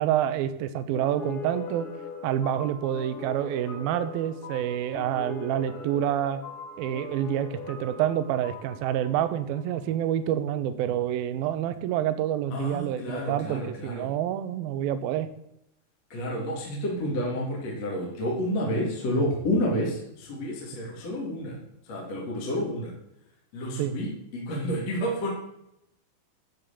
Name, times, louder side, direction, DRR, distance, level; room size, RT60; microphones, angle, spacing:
voice 1, 0.0-1.9 2.2-6.4 6.8-15.3 23.8-24.0, right 11 dB, 80° right, 11 dB, 2.2 m, -28 dB
sound 1, 0.9-10.2, left 5 dB, 60° left, 2.3 m, -41 dB
voice 2, 12.5-14.1 16.1-21.6 21.9-22.9 23.5-25.3, equal, 40° left, -2 dB, 3.5 m, -30 dB
12.0 x 7.7 x 6.9 m, 0.82 s
omnidirectional pair, 5.3 m